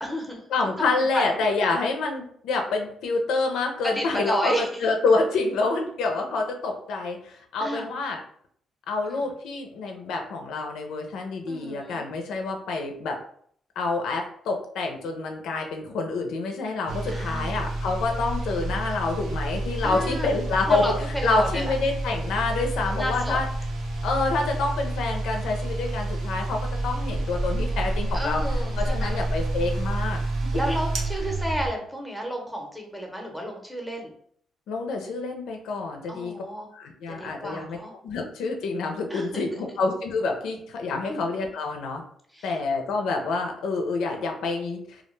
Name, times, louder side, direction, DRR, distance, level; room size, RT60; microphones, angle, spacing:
voice 1, 0.0-0.4 0.8-1.2 3.8-4.7 7.6-7.9 9.1-9.3 11.5-12.0 17.1-17.5 19.8-20.3 20.7-21.7 22.9-23.4 28.1-29.2 30.5-34.1 36.1-36.7 37.1-37.9 39.1-39.6 41.1-41.3 42.3-42.6, equal, ahead, 1 dB, 0.7 m, -31 dB
voice 2, 0.5-8.2 8.9-13.2 13.8-20.8 21.2-23.5 24.0-28.4 28.8-30.2 34.7-36.4 36.7-37.8 38.0-42.0 42.4-45.0, left 3 dB, 85° left, 2 dB, 0.4 m, -27 dB
sound 1, 16.9-31.7, right 2 dB, 80° right, 0.6 m, -29 dB
2.3 x 2.2 x 3.1 m, 0.63 s
cardioid pair, 90°, 0 cm